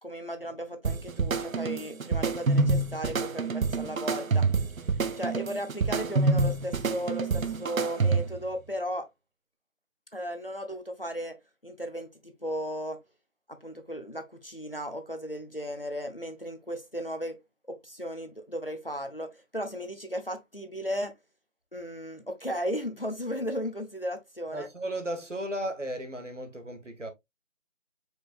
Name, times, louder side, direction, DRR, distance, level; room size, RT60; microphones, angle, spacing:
voice 1, 0.0-4.5 5.2-9.1 10.1-11.4 11.6-13.0 13.5-17.4 17.7-21.1 21.7-24.7, equal, 45° left, 0.7 m, -35 dB
sound 1, 0.8-8.5, right 3 dB, 80° right, 0.7 m, -27 dB
voice 2, 24.5-27.1, right 1 dB, 60° right, 1.4 m, -35 dB
4.8 x 4.5 x 2.4 m
figure-of-eight pair, 175°, 40 cm